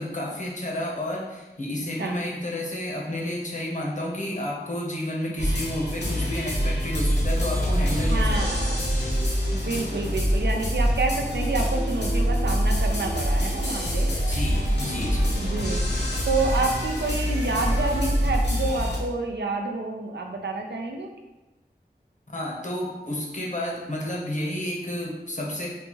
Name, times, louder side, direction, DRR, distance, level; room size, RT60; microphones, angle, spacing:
voice 1, 0.0-8.7 14.3-15.3 22.3-25.7, left 1 dB, 45° left, -2 dB, 0.8 m, -31 dB
sound 1, 5.4-19.0, equal, 80° left, 0.8 m, -25 dB
voice 2, 8.1-8.8 9.5-14.1 15.4-15.8 16.3-21.1, right 3 dB, 85° right, 2 dB, 0.5 m, -28 dB
3.9 x 2.3 x 3.0 m, 1.1 s
wide cardioid pair, 55°, 18 cm